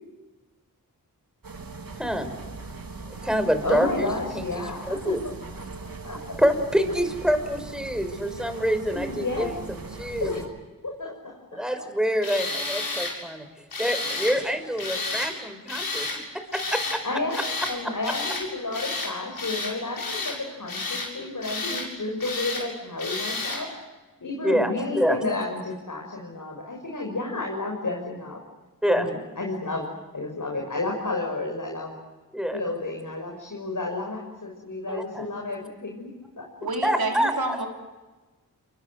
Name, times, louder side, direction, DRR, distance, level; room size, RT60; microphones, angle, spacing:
sound 1, 1.4-10.5, right 4 dB, 70° right, 3.5 m, -40 dB
voice 1, 2.0-2.3 3.1-4.1 4.4-5.2 6.4-10.5 11.5-13.5 13.8-16.1 16.3-17.0 17.3-17.4 24.4-25.2 28.8-29.1 32.3-32.6 34.9-35.3 36.8-37.6, equal, ahead, 9 dB, 5.7 m, -26 dB
voice 2, 3.6-5.1 6.0-6.4 8.9-9.6 10.2-10.4 10.8-11.4 17.0-17.4 17.7-23.7 24.2-28.4 28.9-29.9 30.1-32.0 32.5-36.1 36.4-36.5, left 2 dB, 60° left, 1 dB, 6.4 m, -31 dB
Tools, 12.2-13.1 13.7-14.4 14.8-15.3 15.7-16.2 16.5-17.0 17.3-17.8 18.0-18.4 18.7-19.1 19.4-20.4 20.7-21.1 21.4-21.9 22.2-22.6 23.0-23.6, left 3 dB, 85° left, 7.8 m, -31 dB
voice 3, 36.6-37.7, right 3 dB, 90° right, 2 dB, 4.5 m, -29 dB
28.5 x 24.0 x 8.0 m, 1.2 s
cardioid pair, 45°, 36 cm